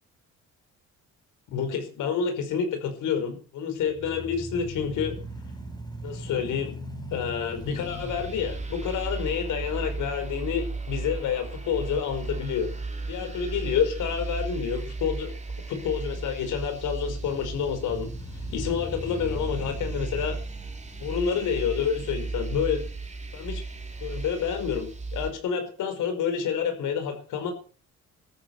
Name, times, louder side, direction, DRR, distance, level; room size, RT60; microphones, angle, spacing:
voice 1, 1.5-5.2 6.0-6.7 7.1-12.7 13.1-15.3 15.7-18.1 18.5-20.4 21.0-22.8 23.3-23.6 24.0-27.5, left 7 dB, 85° left, 7 dB, 5.1 m, -28 dB
sound 1, 3.8-11.9 12.4-12.5 17.0-21.5, left 1 dB, 15° left, 5.9 m, -41 dB
sound 2, 7.5-25.3, right 3 dB, 25° right, 3.0 m, -35 dB
13.5 x 10.5 x 7.9 m, 0.40 s
cardioid pair, 90°, 30 cm